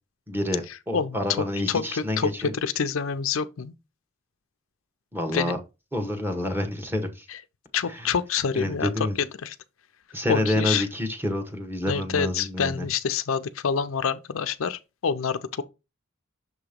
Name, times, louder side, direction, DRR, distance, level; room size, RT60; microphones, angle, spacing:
voice 1, 0.3-2.5 5.1-5.6 5.9-7.3 7.9-8.1 8.5-9.2 10.1-12.9, left 1 dB, 10° right, 1.1 m, -28 dB
voice 2, 0.9-1.8 2.2-3.7 5.3-5.6 7.3-7.4 7.7-9.6 10.3-10.8 11.9-15.6, left 6 dB, 75° left, 0.5 m, -27 dB
6.7 x 2.9 x 5.1 m
head